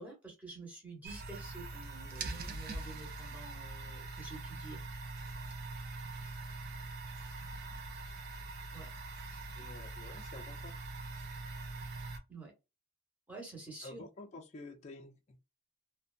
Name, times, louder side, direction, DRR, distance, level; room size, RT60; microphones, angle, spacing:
voice 1, 0.0-4.8 8.7-8.9 9.3-9.5 12.3-12.5 13.3-14.0, right 3 dB, 10° right, 1.0 m, -49 dB
sound 1, 1.0-12.2, right 2 dB, 45° right, 0.4 m, -43 dB
voice 2, 9.6-10.8 13.8-15.4, left 2 dB, 35° left, 0.4 m, -50 dB
2.7 x 2.1 x 2.4 m
head